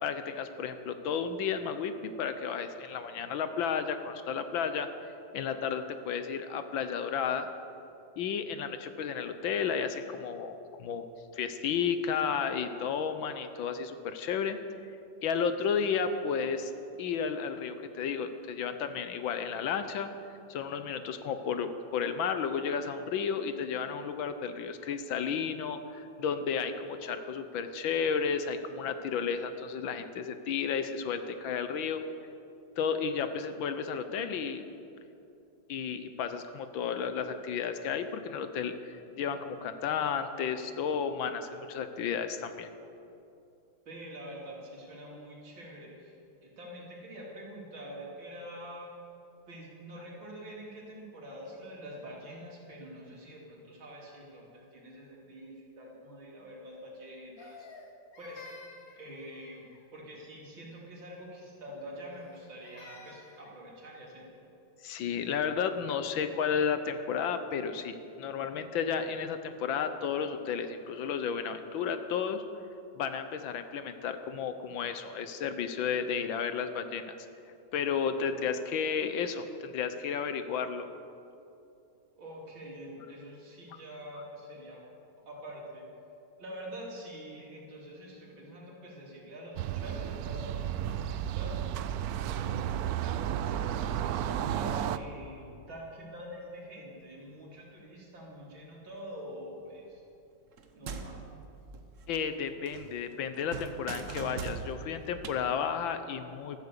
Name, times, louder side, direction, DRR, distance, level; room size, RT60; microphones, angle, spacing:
voice 1, 0.0-4.9 5.3-7.5 8.2-11.0 11.3-14.6 15.2-16.7 17.0-20.1 20.5-32.0 32.8-34.6 35.7-42.7 64.8-72.4 73.0-77.1 77.7-80.9 102.1-106.6, left 6 dB, 75° left, 9 dB, 1.6 m, -32 dB
voice 2, 43.8-46.2 46.4-48.9 49.5-57.7 58.2-58.5 59.0-64.3 82.2-84.8 85.3-85.9 86.4-91.7 92.2-100.0 100.7-101.2, equal, 70° right, -4 dB, 4.2 m, -46 dB
Crying sobbing, 57.4-59.9 62.1-63.6, left 3 dB, 50° left, 1.7 m, -52 dB
sound 1, 89.6-95.0, right 10 dB, 90° right, 0.8 m, -33 dB
sound 2, 100.5-102.4 102.7-105.4, right 5 dB, 50° right, 1.1 m, -42 dB
15.0 x 14.0 x 6.7 m, 2.7 s
omnidirectional pair, 2.2 m